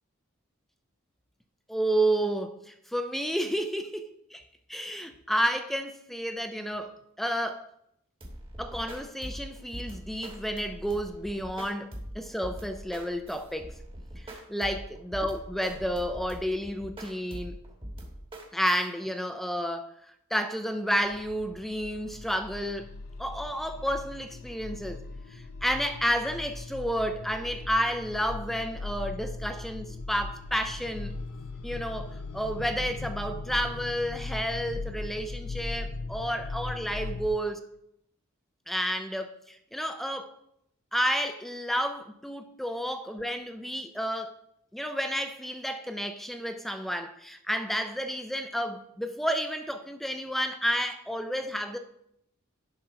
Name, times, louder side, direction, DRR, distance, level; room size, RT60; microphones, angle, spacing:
voice 1, 1.7-4.4 4.7-7.7 8.6-13.7 14.2-17.6 18.5-19.9 20.3-22.9 23.2-25.0 25.3-31.1 31.6-37.6 38.7-40.3 40.9-44.3 44.7-51.8, equal, ahead, 8 dB, 0.4 m, -31 dB
sound 1, 8.2-18.9, equal, 25° right, 1.4 m, -42 dB
sound 2, 21.0-37.3, left 3 dB, 80° left, 0.7 m, -39 dB
10.0 x 3.9 x 5.7 m, 0.76 s
head